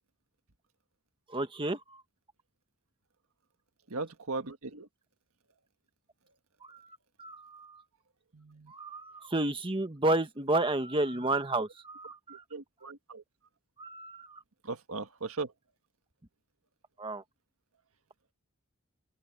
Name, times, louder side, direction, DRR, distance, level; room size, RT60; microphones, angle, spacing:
voice 1, 1.3-1.8 6.6-7.8 8.7-12.4 13.8-14.4 17.0-17.2, right 2 dB, 25° right, 1.4 m, -31 dB
voice 2, 3.9-4.9 8.3-8.7 11.1-11.3 12.3-13.2 14.6-15.5, right 3 dB, 75° right, 1.7 m, -38 dB
head